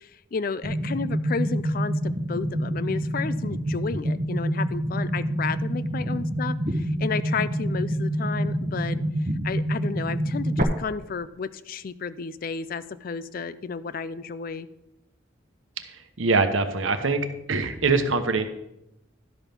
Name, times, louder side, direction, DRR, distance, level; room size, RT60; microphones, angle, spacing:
voice 1, 0.0-14.7, left 5 dB, 45° left, 15 dB, 0.4 m, -32 dB
sound 1, 0.6-10.6, equal, 40° right, 0.9 m, -27 dB
voice 2, 15.8-17.2 17.5-18.5, right 3 dB, 85° right, 8 dB, 1.0 m, -23 dB
12.0 x 5.3 x 5.8 m, 0.86 s
head